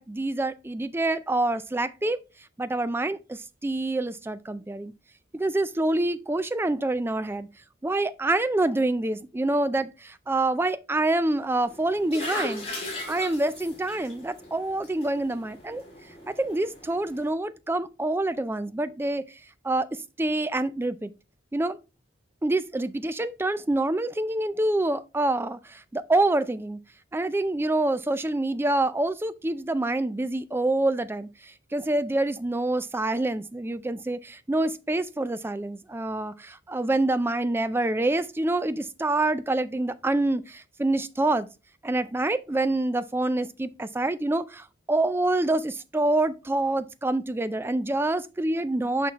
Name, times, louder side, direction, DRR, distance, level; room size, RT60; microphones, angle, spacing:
voice 1, 0.0-2.2 2.6-4.9 5.3-7.5 7.8-12.7 13.1-15.8 16.3-19.2 19.6-21.1 21.5-21.8 22.4-26.8 27.1-31.3 31.7-41.5 41.8-49.1, right 2 dB, 10° right, 0.3 m, -26 dB
sound 1, 11.7-17.3, left 1 dB, 30° left, 2.5 m, -38 dB
6.1 x 5.9 x 2.9 m
head